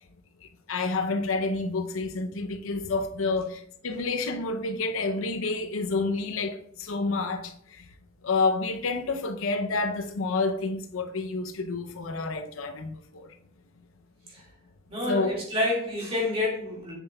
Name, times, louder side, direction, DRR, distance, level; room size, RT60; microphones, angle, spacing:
voice 1, 0.7-7.8 8.2-13.3 15.1-15.3, left 3 dB, 80° left, 0.6 m, -29 dB
voice 2, 14.9-16.9, left 2 dB, 30° right, 2.1 m, -28 dB
7.3 x 6.8 x 2.3 m
head